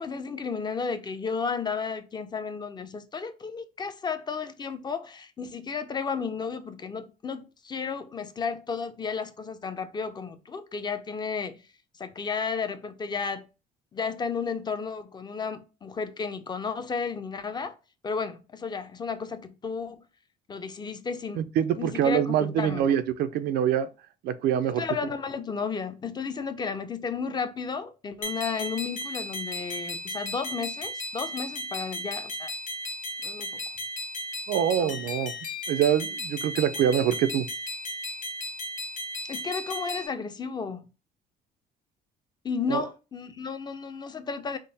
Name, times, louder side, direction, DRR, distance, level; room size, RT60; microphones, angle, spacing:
voice 1, 0.0-11.6 12.0-13.4 13.9-17.8 18.0-20.1 20.5-21.4 21.8-22.9 24.8-32.5 33.2-33.5 34.8-34.9 39.3-40.9 42.4-44.6, left 5 dB, 25° left, 0.5 m, -33 dB
voice 2, 21.3-23.9 24.2-24.8 34.5-35.3 35.7-37.5 42.7-42.9, right 9 dB, 75° right, 0.4 m, -25 dB
sound 1, 28.2-40.1, left 1 dB, 50° left, 1.1 m, -35 dB
3.6 x 2.0 x 3.9 m
cardioid pair, 110°, 17 cm